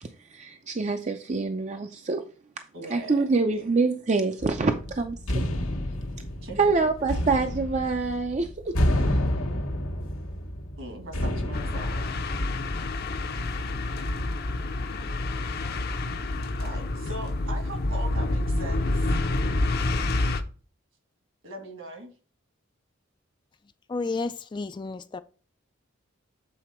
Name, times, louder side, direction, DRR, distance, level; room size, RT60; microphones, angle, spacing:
voice 1, 0.0-2.2 2.9-5.4 6.6-8.8, right 4 dB, 35° right, 0.5 m, -26 dB
voice 2, 2.7-3.7 6.4-7.2 10.8-12.1 16.6-19.2 21.4-22.1, right 1 dB, 65° right, 2.0 m, -40 dB
sound 1, 4.4-13.1, left 1 dB, 85° left, 1.1 m, -29 dB
sound 2, 11.5-20.4, left 2 dB, 50° left, 0.7 m, -28 dB
voice 3, 23.9-25.2, left 3 dB, 20° left, 0.3 m, -31 dB
7.7 x 4.0 x 4.3 m
head